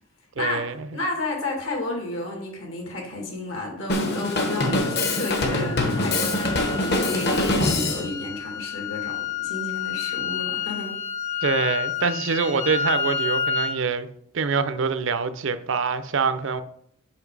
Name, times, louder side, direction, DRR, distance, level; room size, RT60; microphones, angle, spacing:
voice 1, 0.4-0.9 11.4-14.1 14.3-16.6, right 5 dB, 65° right, 0.5 m, -25 dB
voice 2, 0.9-11.0, left 2 dB, 75° left, 2.2 m, -32 dB
Drum kit, 3.9-8.1, left 2 dB, 55° left, 1.1 m, -24 dB
sound 1, 4.1-13.8, left 6 dB, 30° left, 0.6 m, -30 dB
5.8 x 5.8 x 4.7 m
head